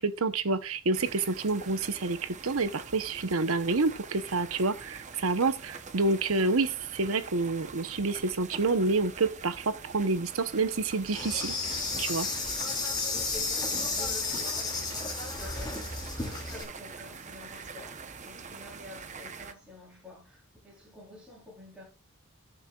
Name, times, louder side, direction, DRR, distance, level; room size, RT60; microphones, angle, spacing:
voice 1, 0.0-12.3, right 3 dB, 80° right, 0.9 m, -28 dB
sound 1, 0.9-19.5, right 5 dB, 35° right, 0.8 m, -45 dB
Insect, 11.1-16.6, left 3 dB, 20° left, 2.4 m, -32 dB
voice 2, 13.1-15.8 16.1-18.0 18.2-21.9, left 2 dB, 5° right, 3.6 m, -48 dB
18.5 x 6.6 x 2.4 m
head